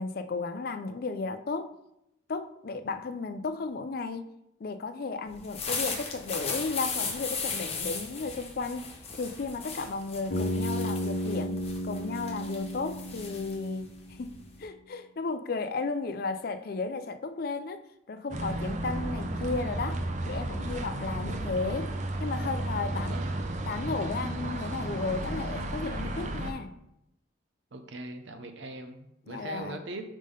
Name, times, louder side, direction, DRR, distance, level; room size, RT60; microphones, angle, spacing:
voice 1, 0.0-1.7 2.3-4.3 4.6-8.9 9.1-13.9 14.2-14.3 14.6-23.2 23.6-26.7 29.3-29.8, left 3 dB, 50° left, 10 dB, 0.4 m, -34 dB
sound 1, 5.3-14.6, left 5 dB, 30° left, 0.8 m, -37 dB
Bass guitar, 10.3-14.3, equal, 75° left, 0.7 m, -33 dB
sound 2, 18.3-26.5, right 1 dB, 40° right, 0.5 m, -33 dB
voice 2, 22.9-23.6 27.7-30.0, right 2 dB, 70° right, 7 dB, 0.7 m, -41 dB
5.0 x 3.6 x 5.4 m, 0.82 s
head